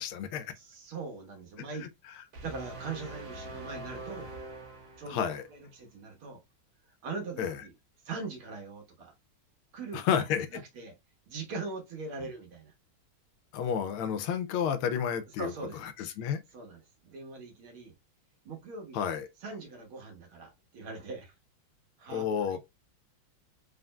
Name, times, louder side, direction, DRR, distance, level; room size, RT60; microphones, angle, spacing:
voice 1, 0.0-0.5 1.8-1.9 5.1-5.5 7.4-7.6 9.9-10.6 12.2-12.3 13.5-15.5 15.8-16.4 18.9-19.3 22.1-22.6, left 8 dB, 85° left, 1.5 m, -31 dB
voice 2, 0.6-1.9 2.4-4.3 5.0-5.2 5.5-6.4 7.0-7.7 8.0-9.1 9.7-10.0 10.5-10.9 11.3-12.7 15.4-15.8 16.5-17.9 18.4-19.0 19.4-21.3 22.0-22.6, right 4 dB, 85° right, 2.2 m, -41 dB
sound 1, 2.3-5.5, right 2 dB, 70° right, 1.9 m, -43 dB
4.2 x 3.8 x 2.2 m
omnidirectional pair, 2.3 m